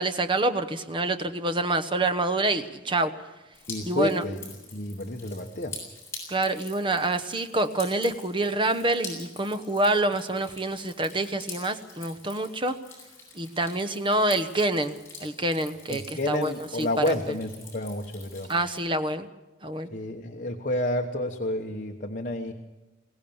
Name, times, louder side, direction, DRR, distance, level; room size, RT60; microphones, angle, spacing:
voice 1, 0.0-3.1 3.8-4.2 6.3-12.7 13.3-17.1 18.5-19.3 19.6-19.9, right 2 dB, 25° right, 10 dB, 1.0 m, -27 dB
Drip, 3.5-18.8, left 3 dB, 15° left, 7.9 m, -45 dB
voice 2, 3.7-4.4 4.7-5.7 15.9-18.5 19.9-22.5, left 1 dB, 40° left, 2 dB, 1.2 m, -30 dB
22.0 x 17.5 x 7.1 m, 1.1 s
head